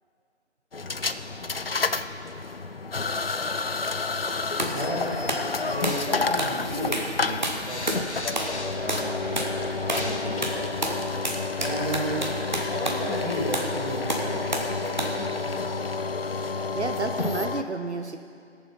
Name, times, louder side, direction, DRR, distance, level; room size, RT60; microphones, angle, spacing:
sound 1, 0.7-17.6, left 4 dB, 55° left, 0.5 m, -30 dB
sound 2, 4.6-4.8 5.3-5.5 5.8-6.1 6.4-6.6 6.9-7.1 7.4-8.1 8.4-8.6 8.9-9.1 9.4-9.5 9.9-10.1 10.4-13.1 13.5-13.7 14.1-14.7 15.0-15.2, right 1 dB, 40° right, 1.2 m, -30 dB
voice 1, 4.7-11.2 11.6-12.4 12.7-15.5, equal, 5° right, -18 dB, 3.3 m, -33 dB
sound 3, 5.8-11.4, left 2 dB, 70° left, 1.3 m, -42 dB
voice 2, 16.7-18.2, right 3 dB, 70° right, 6 dB, 0.8 m, -30 dB
17.5 x 6.9 x 5.5 m, 2.4 s
figure-of-eight pair, 175°, 35 cm